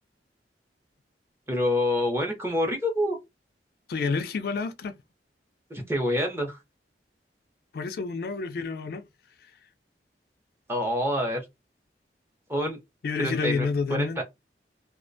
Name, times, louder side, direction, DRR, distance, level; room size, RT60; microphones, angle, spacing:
voice 1, 1.5-3.2 5.7-6.6 10.7-11.4 12.5-12.8 13.2-14.2, left 1 dB, 15° right, 0.6 m, -27 dB
voice 2, 3.9-4.9 7.7-9.0 13.0-14.2, left 4 dB, 60° left, 0.3 m, -29 dB
2.3 x 2.1 x 2.5 m
head